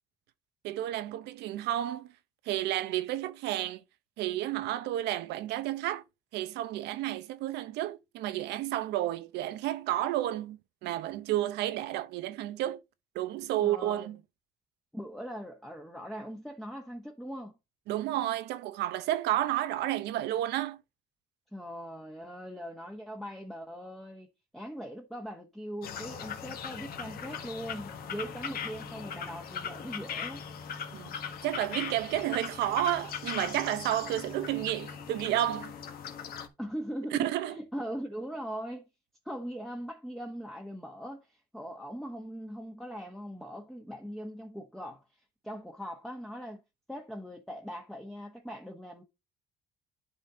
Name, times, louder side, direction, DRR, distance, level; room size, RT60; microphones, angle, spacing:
voice 1, 0.6-2.1 2.4-3.8 4.2-6.0 6.3-12.8 13.1-14.2 17.9-20.8 30.9-31.2 31.4-35.8 37.1-37.6, right 13 dB, 85° right, 0.8 m, -31 dB
voice 2, 13.6-14.1 14.9-17.6 21.5-30.4 36.6-38.8 39.2-45.0 45.4-46.6 46.9-49.0, equal, ahead, 1.1 m, -40 dB
sound 1, 25.8-36.5, left 7 dB, 65° left, 1.6 m, -39 dB
11.0 x 4.3 x 3.7 m
cardioid pair, 110°, 17 cm